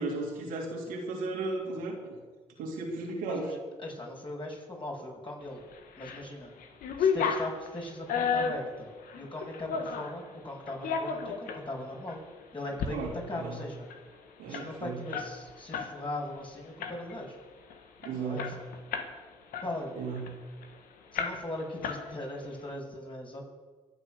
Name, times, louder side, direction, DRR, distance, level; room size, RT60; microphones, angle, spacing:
voice 1, 0.0-2.0 2.6-3.4 12.9-13.6 14.4-15.0 18.0-18.5 20.0-20.2, right 3 dB, 85° right, -1 dB, 3.1 m, -35 dB
voice 2, 3.3-5.6 6.0-6.5 7.0-8.9 9.2-12.2 12.5-13.9 14.5-17.4 18.1-18.5 19.6-19.9 21.1-23.5, left 1 dB, 35° left, -1 dB, 6.4 m, -39 dB
sound 1, 5.7-6.3 6.6-10.2 10.7-11.6 12.1-12.2 12.6-12.9 13.2-13.3 13.6-15.9 16.2-16.4 16.8-17.3 17.7-17.8 18.0-19.2 19.5-20.7 21.2-21.6 21.8-22.5, left 6 dB, 75° left, 1.5 m, -32 dB
23.0 x 8.0 x 6.6 m, 1.4 s
supercardioid pair, 50°, 14 cm